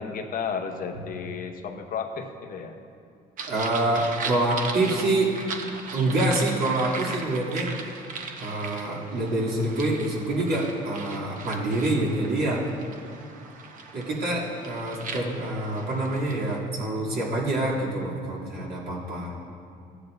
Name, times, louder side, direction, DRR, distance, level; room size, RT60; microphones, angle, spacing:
voice 1, 0.0-2.8, left 6 dB, 55° left, 5 dB, 0.9 m, -33 dB
sound 1, 3.4-16.6, right 4 dB, 50° right, 1.0 m, -38 dB
voice 2, 3.5-5.3 5.9-7.7 8.4-12.7 13.9-19.3, right 2 dB, 70° right, -5 dB, 2.7 m, -26 dB
15.5 x 9.8 x 2.6 m, 2.4 s
cardioid pair, 110°, 17 cm